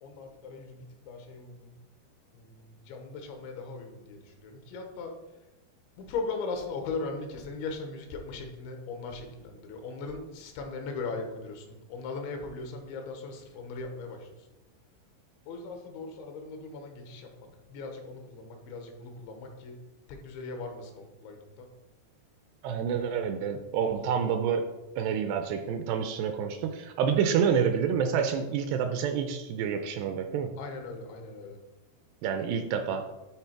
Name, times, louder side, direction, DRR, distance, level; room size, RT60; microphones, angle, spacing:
voice 1, 0.0-1.7 2.3-5.1 6.0-14.5 15.5-19.8 20.1-21.7 30.6-31.6, left 3 dB, 85° left, 3 dB, 3.4 m, -39 dB
voice 2, 22.6-24.7 25.0-30.5 32.2-33.0, right 7 dB, 80° right, 6 dB, 2.5 m, -28 dB
11.5 x 4.2 x 4.5 m, 1.0 s
omnidirectional pair, 5.2 m